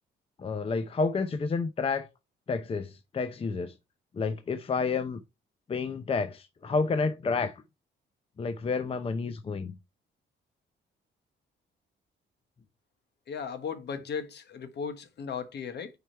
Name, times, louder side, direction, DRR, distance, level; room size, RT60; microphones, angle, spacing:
voice 1, 0.4-2.1 2.5-3.7 4.1-5.2 5.7-7.6 8.4-9.8, left 4 dB, 30° left, 0.6 m, -30 dB
voice 2, 13.3-15.9, left 6 dB, 60° left, 1.2 m, -36 dB
4.9 x 4.8 x 4.5 m
cardioid pair, 90°, 20 cm